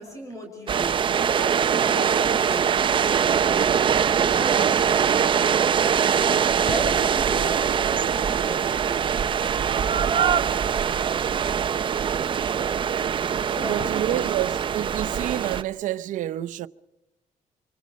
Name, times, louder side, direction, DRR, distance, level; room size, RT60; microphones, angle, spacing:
voice 1, 0.0-3.1 4.2-5.5 6.2-9.0 13.5-14.3, equal, 25° left, 5.6 m, -36 dB
sound 1, 0.7-15.6, right 7 dB, 40° right, 0.8 m, -22 dB
voice 2, 13.6-16.7, right 13 dB, 90° right, 0.8 m, -28 dB
26.0 x 25.0 x 5.3 m
cardioid pair, 145°, 13 cm